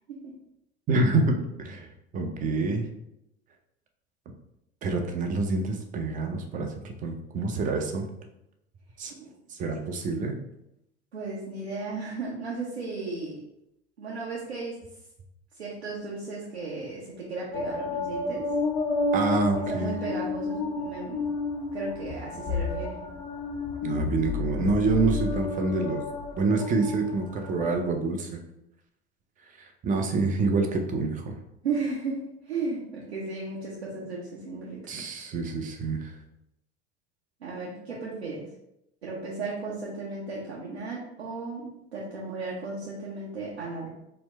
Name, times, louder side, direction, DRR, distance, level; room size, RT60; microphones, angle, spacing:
voice 1, 0.9-1.9 2.1-2.9 4.8-8.1 9.0-9.1 9.5-10.4 19.1-20.0 23.8-26.0 26.4-28.4 29.6-31.4 34.9-36.1, right 3 dB, 25° right, 4 dB, 0.6 m, -27 dB
voice 2, 9.1-9.4 11.1-13.4 14.0-14.8 15.6-18.5 19.7-21.3 21.7-23.0 31.6-34.8 37.4-38.5 39.0-43.9, right 3 dB, 75° right, -5 dB, 0.9 m, -35 dB
sound 1, 17.5-27.8, left 3 dB, 15° left, 0.3 m, -31 dB
4.4 x 2.2 x 4.1 m, 0.84 s
figure-of-eight pair, 75°, 32 cm